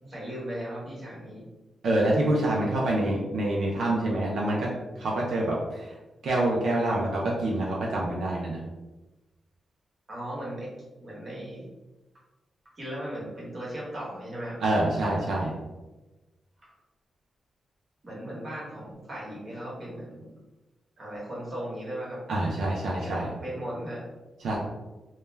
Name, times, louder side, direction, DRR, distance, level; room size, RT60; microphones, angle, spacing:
voice 1, 0.0-1.4 10.1-10.7 11.0-11.7 12.8-14.6 16.6-16.7 18.0-20.3 21.0-22.2 22.8-23.1 23.4-24.0, right 1 dB, 35° right, -6 dB, 1.1 m, -37 dB
voice 2, 1.8-4.7 5.0-6.0 6.2-8.6 14.6-15.5 22.3-23.3 24.4-24.6, right 1 dB, 85° right, -4 dB, 0.4 m, -26 dB
2.1 x 2.1 x 3.2 m, 1.1 s
wide cardioid pair, 115°, 0 cm